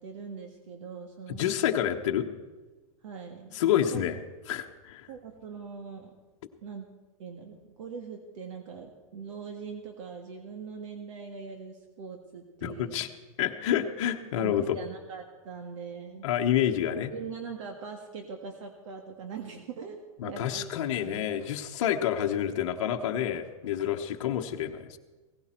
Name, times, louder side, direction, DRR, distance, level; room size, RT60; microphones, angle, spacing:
voice 1, 0.0-1.5 3.0-3.6 3.9-4.1 5.1-6.1 6.6-6.8 7.2-13.1 14.4-16.3 17.1-20.7 21.0-21.5, right 5 dB, 60° right, 4 dB, 1.6 m, -42 dB
voice 2, 1.4-2.3 3.5-4.2 4.5-5.1 12.6-13.1 13.4-14.8 16.2-17.1 20.2-25.0, left 10 dB, 55° left, 3 dB, 1.1 m, -28 dB
17.0 x 16.5 x 4.4 m, 1.2 s
supercardioid pair, 170°, 18 cm